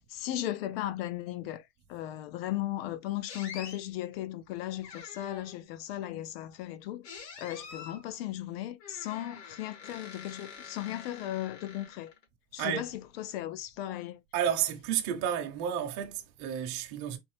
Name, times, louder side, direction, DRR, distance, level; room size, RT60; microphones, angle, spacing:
voice 1, 0.1-7.1 7.4-12.1 12.5-14.2, left 13 dB, 40° left, 0.4 m, -36 dB
sound 1, 3.3-3.8 4.8-5.6 7.0-8.0 8.8-12.2, left 6 dB, 85° left, 2.3 m, -46 dB
voice 2, 14.3-17.2, right 9 dB, 35° right, 0.9 m, -31 dB
4.4 x 2.6 x 3.2 m
supercardioid pair, 145°, 47 cm